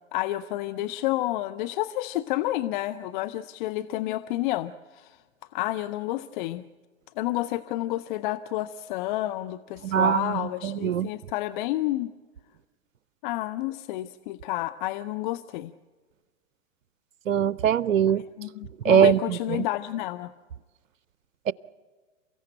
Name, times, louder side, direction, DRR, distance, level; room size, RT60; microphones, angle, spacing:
voice 1, 0.1-5.2 5.5-6.6 7.2-12.1 13.2-15.7 18.4-20.3, left 15 dB, 40° left, 11 dB, 0.6 m, -30 dB
voice 2, 9.8-11.1 17.3-18.2 18.8-19.7 21.5-21.6, right 8 dB, 80° right, 20 dB, 0.6 m, -22 dB
28.5 x 15.5 x 8.9 m, 1.4 s
hypercardioid pair, 110°, 39 cm